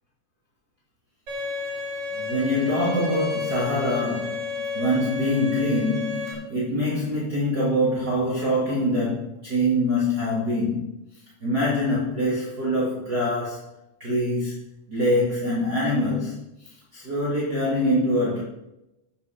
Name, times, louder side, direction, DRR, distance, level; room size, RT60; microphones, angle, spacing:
Bowed string instrument, 1.3-6.3, left 4 dB, 50° right, 4.9 m, -31 dB
voice 1, 2.1-13.7 14.0-14.6 14.9-18.4, left 1 dB, 30° right, -8 dB, 2.7 m, -25 dB
9.3 x 8.8 x 5.3 m, 0.88 s
omnidirectional pair, 4.3 m